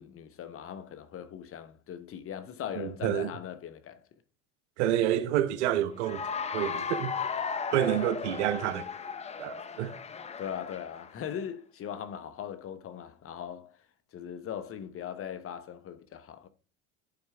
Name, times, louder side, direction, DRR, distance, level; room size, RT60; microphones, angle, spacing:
voice 1, 0.0-4.0 10.4-13.7 14.1-16.5, left 9 dB, 40° left, 0.9 m, -40 dB
voice 2, 2.8-3.3 4.8-6.2 6.5-7.2 7.7-8.8 9.4-9.9, right 11 dB, 85° right, 0.8 m, -28 dB
Cheering / Applause, 6.0-11.2, left 6 dB, 20° left, 0.6 m, -36 dB
10.5 x 4.6 x 3.3 m
supercardioid pair, 90°, 34 cm